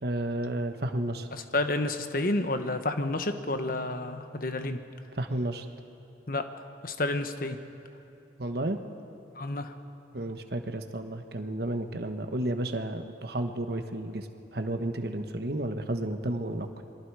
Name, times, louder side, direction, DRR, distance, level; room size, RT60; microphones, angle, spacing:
voice 1, 0.0-1.3 5.2-5.7 8.4-8.8 10.1-16.8, right 1 dB, 60° right, 6 dB, 1.3 m, -32 dB
voice 2, 1.3-4.8 6.3-6.4 6.8-7.6 9.4-9.7, left 2 dB, 50° left, 8 dB, 1.1 m, -30 dB
27.5 x 23.0 x 4.8 m, 2.7 s
head